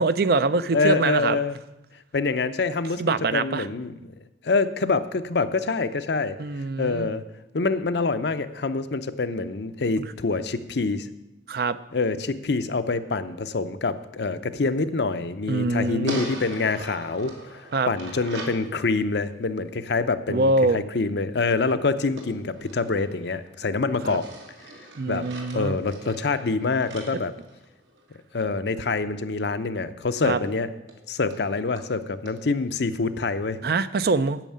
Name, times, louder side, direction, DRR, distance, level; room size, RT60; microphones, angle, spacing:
voice 1, 0.0-1.4 3.0-3.7 6.4-7.1 11.5-11.8 15.5-16.2 17.7-17.9 20.3-20.8 24.0-24.2 25.0-25.8 30.2-30.4 33.6-34.4, right 3 dB, 55° right, 14 dB, 0.5 m, -24 dB
voice 2, 0.7-1.6 2.1-4.1 4.4-6.4 6.8-7.2 7.5-11.1 11.9-17.6 17.9-24.3 25.1-25.3 25.5-27.3 28.3-30.7 31.1-33.6, left 3 dB, 65° left, 11 dB, 0.6 m, -26 dB
sound 1, 16.1-18.6 22.2-23.6 24.0-28.2 30.1-30.2 30.4-30.5 30.9-31.0 31.3-31.4 31.8-31.9 32.2-32.4, right 2 dB, 85° right, 2.2 m, -40 dB
9.0 x 6.4 x 8.6 m, 0.95 s
head